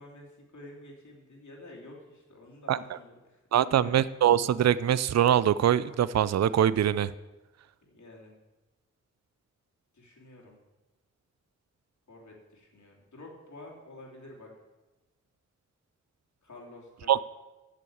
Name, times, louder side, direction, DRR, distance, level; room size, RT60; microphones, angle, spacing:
voice 1, 0.0-3.9 7.8-8.4 9.9-10.6 12.1-14.5 16.4-17.2, left 2 dB, 70° left, -2 dB, 3.1 m, -49 dB
voice 2, 3.5-7.1 17.1-17.2, right 10 dB, 60° right, 18 dB, 0.4 m, -23 dB
8.4 x 7.0 x 8.6 m, 1.1 s
cardioid pair, 40°, 31 cm